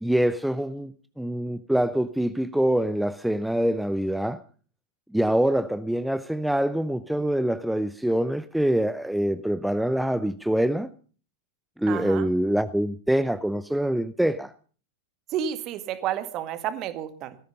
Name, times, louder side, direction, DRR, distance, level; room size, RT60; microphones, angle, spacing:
voice 1, 0.0-4.4 5.1-10.9 11.8-14.5, right 1 dB, ahead, 0.7 m, -25 dB
voice 2, 11.9-12.3 15.3-17.4, right 10 dB, 35° right, 2.0 m, -31 dB
18.5 x 14.5 x 5.3 m
figure-of-eight pair, 90°, 0 cm